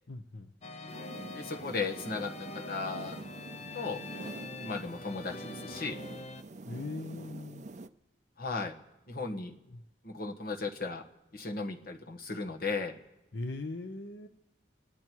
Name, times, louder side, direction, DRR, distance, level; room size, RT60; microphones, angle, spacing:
voice 1, 0.1-0.5 6.7-7.7 9.7-9.8 13.3-14.3, left 2 dB, 75° left, 6 dB, 0.8 m, -40 dB
sound 1, 0.6-6.4, left 3 dB, 35° left, 0.7 m, -44 dB
sound 2, 0.9-7.9, right 3 dB, 40° right, 0.5 m, -46 dB
voice 2, 1.3-3.2 3.7-4.0 4.6-6.0 8.4-8.7 9.1-9.5 10.0-11.0 11.3-12.9, left 4 dB, 55° left, 2 dB, 1.4 m, -36 dB
28.0 x 9.8 x 4.6 m, 0.95 s
head